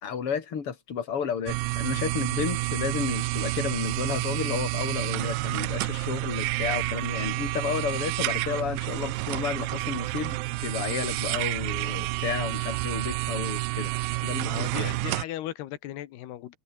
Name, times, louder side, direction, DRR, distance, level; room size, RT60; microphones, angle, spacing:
voice 1, 0.0-13.9 14.2-14.9, left 7 dB, 40° left, 3.8 m, -32 dB
sound 1, 1.5-15.2, right 21 dB, 80° right, 2.1 m, -29 dB
voice 2, 14.5-16.6, left 13 dB, 85° left, 3.4 m, -37 dB
omnidirectional pair, 4.5 m